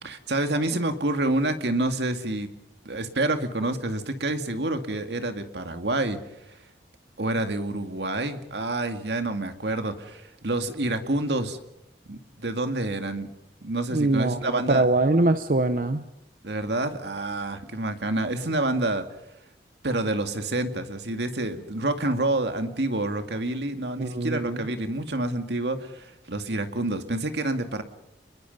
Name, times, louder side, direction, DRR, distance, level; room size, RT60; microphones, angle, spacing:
voice 1, 0.0-2.5 2.8-6.2 7.2-11.6 12.1-13.3 13.6-14.9 16.4-19.1 19.8-27.8, right 2 dB, 80° right, 7 dB, 2.2 m, -28 dB
voice 2, 13.9-16.0 24.0-24.6, right 2 dB, 50° right, 10 dB, 0.8 m, -23 dB
29.5 x 21.5 x 5.4 m, 0.82 s
head